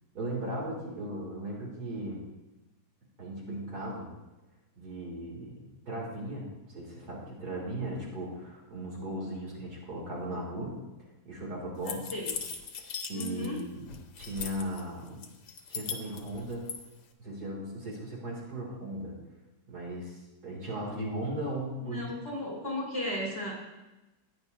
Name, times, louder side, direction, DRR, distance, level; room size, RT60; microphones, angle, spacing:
voice 1, 0.1-2.2 3.2-4.1 4.8-10.8 11.2-12.1 12.8-13.9 14.2-15.2 15.7-16.7 17.2-19.1 19.7-22.1, right 1 dB, 65° right, -3 dB, 3.1 m, -37 dB
sound 1, 11.9-13.6 13.9-14.8 15.2-16.8, left 7 dB, 75° left, 1.5 m, -38 dB
voice 2, 13.1-13.6 21.8-23.5, left 1 dB, 35° left, -4 dB, 4.1 m, -35 dB
15.0 x 9.5 x 2.7 m, 1.0 s
omnidirectional pair, 1.8 m